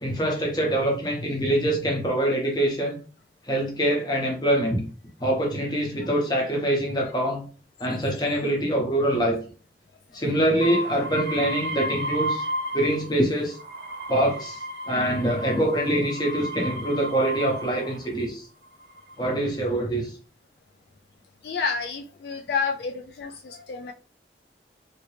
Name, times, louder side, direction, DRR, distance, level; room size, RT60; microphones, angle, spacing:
voice 1, 0.0-3.0 3.5-4.8 5.2-7.5 7.8-9.4 10.1-12.4 12.7-13.6 14.1-14.6 14.9-18.5 19.2-20.1, right 1 dB, 25° left, 0 dB, 0.9 m, -24 dB
sound 1, 10.6-13.1 13.5-18.1 18.8-19.4, right 1 dB, 75° right, 0.8 m, -33 dB
voice 2, 21.4-23.9, left 5 dB, 65° left, 3 dB, 0.3 m, -29 dB
2.9 x 2.8 x 3.2 m, 0.38 s
head